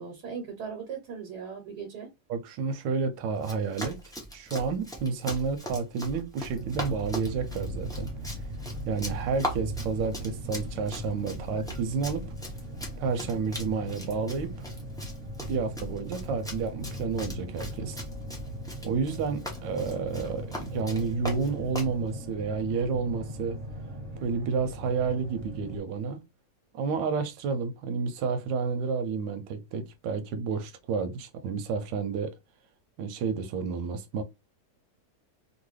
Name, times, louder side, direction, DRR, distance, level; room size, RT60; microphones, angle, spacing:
voice 1, 0.0-2.1, right 6 dB, 70° right, 1.4 m, -38 dB
voice 2, 2.3-4.0 4.3-8.1 8.9-12.3 13.0-14.5 15.5-18.0 18.8-23.6 24.2-26.2 26.7-32.3 33.0-34.2, right 5 dB, 90° right, 1.2 m, -30 dB
Run, 3.4-22.0, equal, 5° left, 0.3 m, -40 dB
sound 1, 6.5-25.8, right 1 dB, 25° right, 1.3 m, -39 dB
3.0 x 2.5 x 3.1 m
omnidirectional pair, 1.9 m